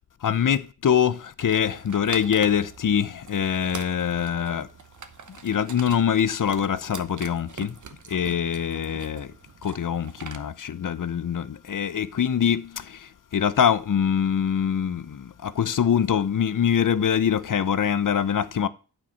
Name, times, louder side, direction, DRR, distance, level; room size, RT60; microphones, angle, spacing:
voice 1, 0.2-4.7 5.3-7.8 8.1-9.3 9.6-18.7, left 8 dB, 50° left, 0.6 m, -24 dB
sound 1, 1.4-10.4, right 6 dB, 45° right, 0.9 m, -43 dB
8.9 x 4.6 x 5.5 m
wide cardioid pair, 85°, 41 cm